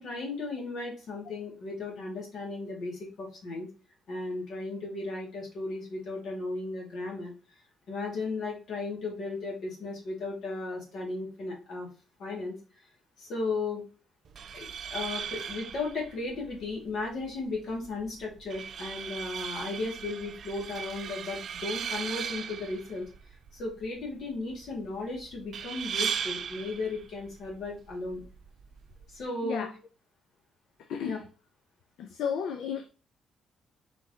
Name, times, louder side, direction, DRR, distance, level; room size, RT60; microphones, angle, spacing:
voice 1, 0.0-3.7 4.1-7.3 7.9-11.9 12.2-12.5 13.2-13.8 14.5-23.1 23.5-28.2 29.1-29.7 31.0-31.2, left 3 dB, 65° left, 2.0 m, -35 dB
sound 1, 14.2-29.2, right 8 dB, 60° right, 0.3 m, -38 dB
voice 2, 30.8-31.2 32.0-32.9, left 7 dB, 80° left, 0.5 m, -33 dB
4.5 x 3.5 x 2.8 m
cardioid pair, 90°, 0 cm